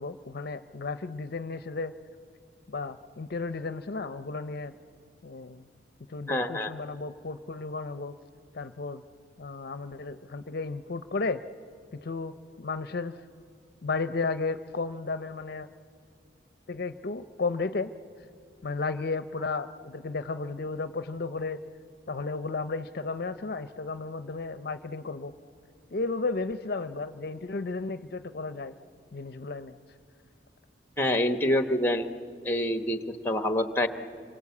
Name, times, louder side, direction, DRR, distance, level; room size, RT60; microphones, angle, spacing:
voice 1, 0.0-1.9 2.7-4.7 5.2-5.6 6.1-8.2 8.5-9.0 9.4-11.4 11.9-13.2 13.8-15.7 16.7-17.9 18.6-21.6 22.1-25.3 25.9-28.7 29.1-29.8, left 3 dB, 55° left, 12 dB, 0.6 m, -33 dB
voice 2, 6.3-6.7 31.0-32.1 32.4-33.9, left 1 dB, 10° left, 8 dB, 1.1 m, -26 dB
26.5 x 22.5 x 8.4 m, 2.5 s
head